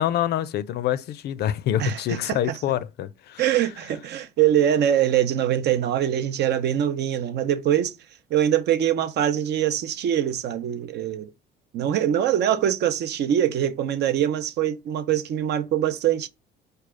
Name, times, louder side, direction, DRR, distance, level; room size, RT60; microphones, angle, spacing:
voice 1, 0.0-3.4, left 11 dB, 55° left, 0.4 m, -26 dB
voice 2, 1.8-2.6 3.4-8.0 8.3-11.3 11.7-16.3, right 10 dB, 60° right, 0.7 m, -23 dB
4.8 x 2.3 x 4.8 m
cardioid pair, 115°, 20 cm